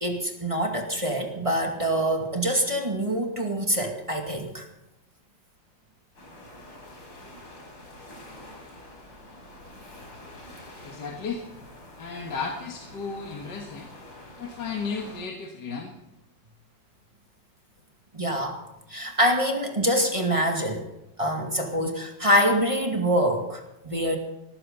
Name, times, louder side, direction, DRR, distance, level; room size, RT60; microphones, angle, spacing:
voice 1, 0.0-4.7 18.1-18.6 18.9-20.8 21.2-24.2, equal, 15° right, 2 dB, 2.3 m, -25 dB
sound 1, 6.2-15.2, left 1 dB, 85° left, 5.9 m, -46 dB
voice 2, 10.8-11.4 12.0-13.9 14.4-15.9, left 5 dB, 65° left, 2 dB, 2.1 m, -34 dB
18.5 x 14.5 x 4.0 m, 0.93 s
omnidirectional pair, 2.0 m